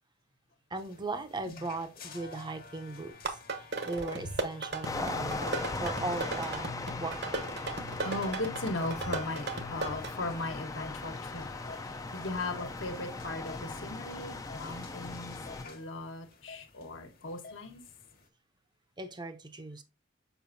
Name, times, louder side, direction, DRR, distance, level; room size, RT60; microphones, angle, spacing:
voice 1, 0.7-3.4 3.8-5.5 5.8-6.7 7.0-7.4 14.6-14.9 19.0-19.8, right 3 dB, 20° right, 0.7 m, -38 dB
sound 1, 0.8-18.3, left 4 dB, 50° left, 1.3 m, -50 dB
sound 2, 3.1-10.1, right 3 dB, 55° right, 1.1 m, -37 dB
sound 3, 4.8-15.7, left 3 dB, 15° left, 0.4 m, -39 dB
voice 2, 8.0-11.5 11.9-15.3 15.6-17.8, left 2 dB, 70° left, 1.4 m, -38 dB
6.9 x 5.4 x 2.6 m
head